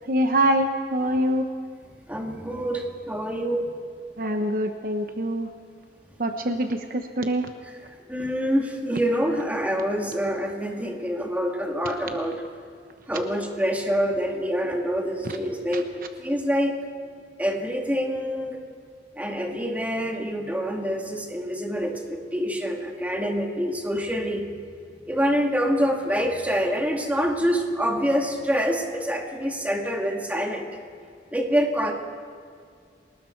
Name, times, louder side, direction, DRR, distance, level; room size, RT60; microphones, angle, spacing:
voice 1, 0.1-1.5 4.2-5.5 6.2-7.5 15.2-15.3 15.7-15.8, right 1 dB, 50° right, 6 dB, 1.0 m, -24 dB
voice 2, 2.1-3.7 8.1-12.3 13.1-15.9 16.2-16.8 17.4-18.6 19.2-24.5 25.1-30.7 31.3-31.9, equal, 10° right, 1 dB, 2.2 m, -26 dB
29.5 x 19.5 x 4.6 m, 2.2 s
head